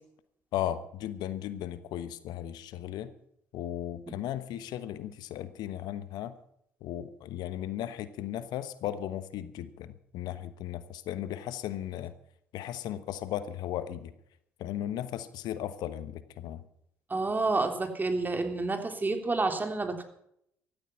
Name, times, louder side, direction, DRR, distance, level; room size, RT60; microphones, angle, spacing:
voice 1, 0.5-3.1 3.5-6.3 6.8-12.1 12.5-14.1 14.6-16.6, left 11 dB, 65° left, 13 dB, 1.2 m, -36 dB
voice 2, 17.1-20.0, right 3 dB, 25° right, 5 dB, 3.5 m, -29 dB
16.0 x 13.5 x 5.7 m, 0.71 s
hypercardioid pair, 55°, 8 cm